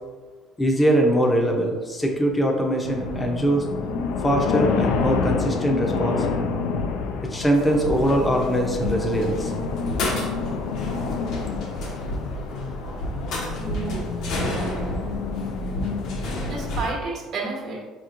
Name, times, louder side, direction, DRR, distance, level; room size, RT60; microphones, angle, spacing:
voice 1, 0.6-3.6 4.2-6.3 7.3-9.5, equal, 15° left, 1 dB, 0.6 m, -22 dB
sound 1, 2.8-16.9, left 5 dB, 80° left, 0.3 m, -28 dB
sound 2, 7.5-16.9, equal, 65° left, 0.8 m, -31 dB
voice 2, 13.6-14.1 14.4-14.9 16.2-17.8, right 3 dB, 65° right, -2 dB, 1.0 m, -32 dB
4.6 x 3.0 x 2.5 m, 1.4 s
cardioid pair, 125°, 0 cm